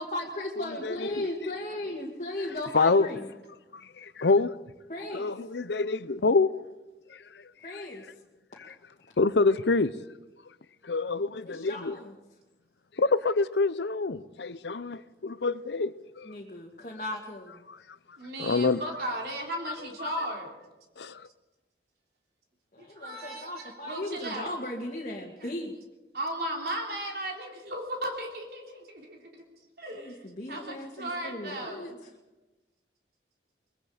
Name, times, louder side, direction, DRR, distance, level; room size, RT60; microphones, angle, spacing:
voice 1, 0.0-3.3 4.9-5.3 7.6-8.1 11.4-12.2 16.2-17.6 22.7-25.7 27.0-27.1 29.9-32.1, left 1 dB, 40° left, 2.2 m, -37 dB
voice 2, 0.8-1.3 2.7-3.1 3.7-4.5 5.1-6.5 7.1-7.2 8.6-8.7 9.2-9.9 10.8-12.0 13.0-16.3 17.7-17.8 18.4-18.8 19.7-19.8 20.0-20.1 21.0-21.3, left 3 dB, 80° left, 0.7 m, -26 dB
voice 3, 18.2-20.5 22.8-24.5 26.1-29.4 29.8-30.2 30.5-31.8, right 1 dB, 65° right, 3.5 m, -36 dB
23.0 x 22.5 x 5.1 m
head